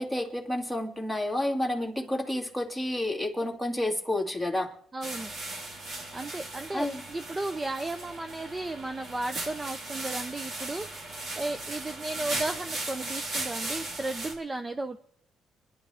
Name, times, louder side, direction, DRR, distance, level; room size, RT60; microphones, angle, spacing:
voice 1, 0.0-4.7 6.7-7.0, left 1 dB, 5° right, 2.3 m, -30 dB
voice 2, 4.9-5.3 6.1-15.0, right 2 dB, 20° right, 0.6 m, -35 dB
sound 1, 5.0-14.3, right 2 dB, 70° right, 3.3 m, -37 dB
27.0 x 11.0 x 3.5 m
cardioid pair, 90°, 0 cm